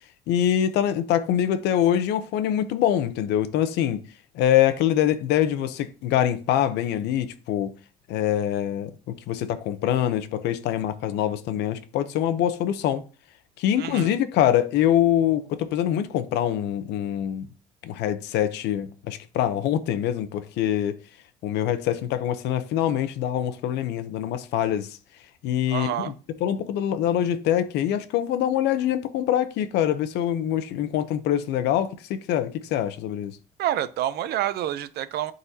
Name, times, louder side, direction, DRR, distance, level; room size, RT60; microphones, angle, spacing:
voice 1, 0.3-4.0 4.3-7.7 8.1-13.0 13.6-17.5 17.8-21.0 21.4-25.0 25.4-26.1 26.4-33.4, left 11 dB, 85° left, 0.8 m, -24 dB
voice 2, 13.8-14.2 25.7-26.1 33.6-35.3, right 12 dB, 70° right, 0.6 m, -28 dB
11.0 x 4.0 x 2.8 m
cardioid pair, 110°, 17 cm